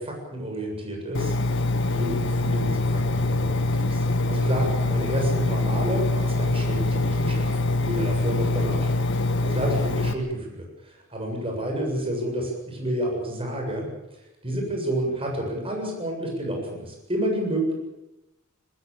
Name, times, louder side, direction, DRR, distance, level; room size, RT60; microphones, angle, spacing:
voice 1, 0.0-1.4 1.9-8.9 9.4-13.9 14.4-17.7, right 1 dB, 30° right, 1 dB, 7.5 m, -29 dB
Engine, 1.1-10.1, left 2 dB, 65° left, 1.5 m, -24 dB
20.5 x 20.5 x 8.7 m, 0.93 s
head